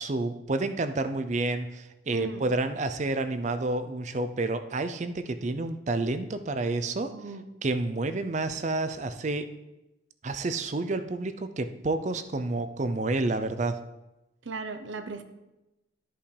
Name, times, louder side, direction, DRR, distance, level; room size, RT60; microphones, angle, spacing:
voice 1, 0.0-7.1 7.6-9.5 10.2-13.8, right 2 dB, 35° right, 10 dB, 0.5 m, -29 dB
voice 2, 2.1-2.4 7.1-7.4 14.4-15.2, right 4 dB, 75° right, 8 dB, 0.7 m, -37 dB
13.0 x 5.5 x 3.3 m, 0.98 s
head